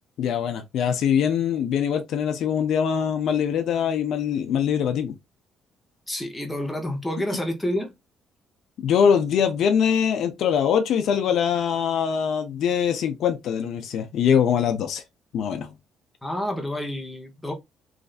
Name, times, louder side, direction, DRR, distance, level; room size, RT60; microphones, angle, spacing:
voice 1, 0.2-5.2 8.8-15.0 15.3-15.7, left 8 dB, 65° left, 0.6 m, -23 dB
voice 2, 6.1-7.9 16.2-17.5, left 1 dB, 5° left, 0.9 m, -29 dB
3.2 x 2.5 x 2.4 m
cardioid pair, 140°, 0 cm